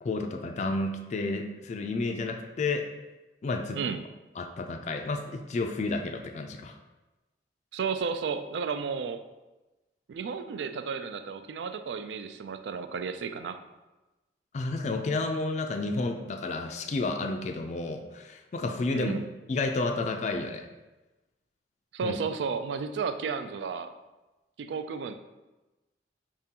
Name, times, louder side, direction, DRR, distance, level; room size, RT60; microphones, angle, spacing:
voice 1, 0.0-2.9 3.4-3.8 4.4-6.8 14.5-19.1 19.5-20.7 22.0-22.2, left 3 dB, 40° left, 4 dB, 0.3 m, -31 dB
voice 2, 7.7-9.2 10.1-13.6 18.9-19.3 21.9-23.9 24.6-25.1, right 5 dB, 80° right, 9 dB, 0.3 m, -33 dB
4.9 x 3.6 x 2.8 m, 1.1 s
head